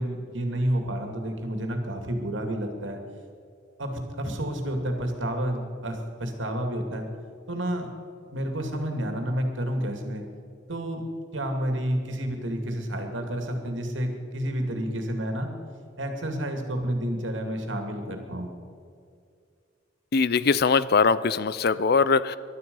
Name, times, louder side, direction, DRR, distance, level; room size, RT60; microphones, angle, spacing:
voice 1, 0.0-3.0 3.8-7.1 7.5-7.9 8.3-10.2 10.7-11.0 11.3-15.5 16.0-18.5, right 1 dB, 85° right, 4 dB, 2.5 m, -30 dB
voice 2, 20.1-22.4, left 5 dB, 55° left, 16 dB, 0.5 m, -21 dB
21.5 x 12.0 x 5.5 m, 2.3 s
head